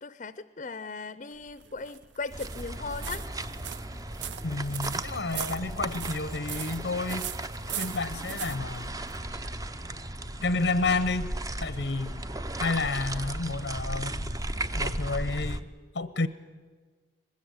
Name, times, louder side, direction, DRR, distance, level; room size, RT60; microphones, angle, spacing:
voice 1, 0.0-3.3, left 4 dB, 45° left, 14 dB, 0.6 m, -38 dB
sound 1, 1.3-9.5, right 10 dB, 85° right, 0.7 m, -40 dB
sound 2, 2.3-15.6, right 1 dB, 20° right, 0.7 m, -36 dB
sound 3, 2.8-15.7, left 1 dB, 50° right, 4.1 m, -55 dB
voice 2, 4.4-7.3 7.8-8.9 10.4-11.3 11.6-12.2 12.6-14.3 14.7-15.7 15.9-16.3, left 3 dB, 85° left, 13 dB, 0.8 m, -30 dB
23.5 x 21.0 x 7.9 m, 1.5 s
head